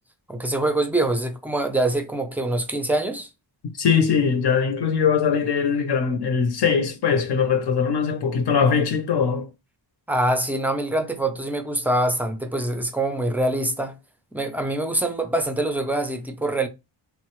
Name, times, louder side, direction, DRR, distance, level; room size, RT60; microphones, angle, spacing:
voice 1, 0.3-3.3 10.1-14.0 14.3-16.7, right 1 dB, 5° right, 0.3 m, -24 dB
voice 2, 3.8-9.5, left 6 dB, 65° left, 0.6 m, -21 dB
3.5 x 2.0 x 2.9 m
wide cardioid pair, 155°, 44 cm